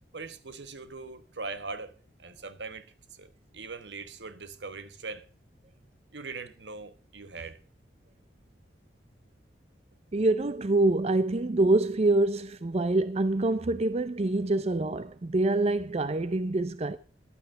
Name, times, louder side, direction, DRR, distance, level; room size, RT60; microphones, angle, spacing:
voice 1, 0.1-1.9 2.2-3.3 3.5-5.2 6.1-7.6, right 3 dB, 75° right, 1.4 m, -41 dB
voice 2, 10.1-17.0, right 2 dB, 35° right, 0.5 m, -25 dB
12.0 x 9.2 x 6.5 m
head